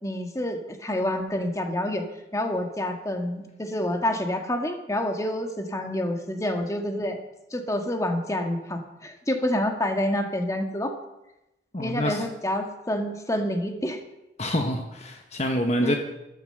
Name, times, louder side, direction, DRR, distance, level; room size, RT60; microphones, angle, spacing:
voice 1, 0.0-2.0 2.3-7.2 7.5-10.9 11.8-14.0 15.8-16.0, left 1 dB, 20° left, 4 dB, 1.7 m, -28 dB
voice 2, 11.7-12.2 14.4-16.0, equal, 40° left, 4 dB, 1.4 m, -26 dB
13.5 x 13.5 x 6.7 m, 0.93 s
head